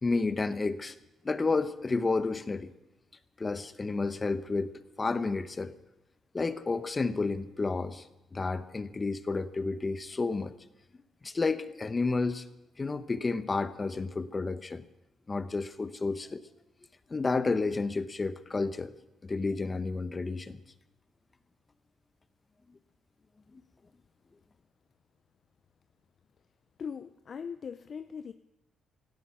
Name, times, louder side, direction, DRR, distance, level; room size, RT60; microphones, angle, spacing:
voice 1, 0.0-1.0 1.2-2.7 3.4-5.7 6.3-8.1 8.3-10.5 11.2-12.4 12.8-14.8 15.3-16.4 17.1-18.9 19.2-20.6, left 3 dB, 25° left, 12 dB, 0.9 m, -31 dB
voice 2, 26.8-28.3, left 6 dB, 50° left, 11 dB, 0.5 m, -40 dB
17.5 x 13.0 x 6.0 m, 0.97 s
cardioid pair, 90°, 0 cm